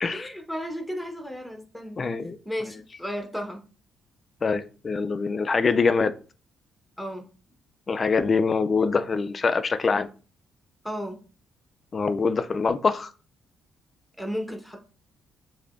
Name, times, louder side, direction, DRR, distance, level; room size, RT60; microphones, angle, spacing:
voice 1, 0.1-2.1 2.4-3.6 7.0-7.3 10.8-11.2 14.2-14.8, equal, ahead, 1.0 m, -34 dB
voice 2, 2.0-2.4 4.4-6.1 7.9-10.1 11.9-13.1, left 4 dB, 35° left, 0.4 m, -24 dB
6.5 x 2.7 x 2.5 m
cardioid pair, 90°, 0 cm